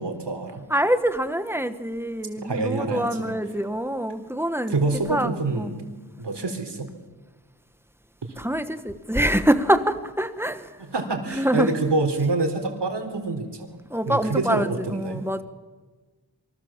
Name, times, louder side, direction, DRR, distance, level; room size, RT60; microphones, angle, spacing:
voice 1, 0.0-0.6 2.4-3.3 4.7-5.8 6.2-6.9 10.9-13.8 14.1-15.2, right 3 dB, 75° right, 5 dB, 4.2 m, -26 dB
voice 2, 0.7-4.8 5.1-5.7 8.4-10.8 11.3-11.8 13.9-15.4, right 1 dB, 5° right, 10 dB, 1.7 m, -25 dB
27.5 x 24.0 x 7.6 m, 1.3 s
wide cardioid pair, 80°, 42 cm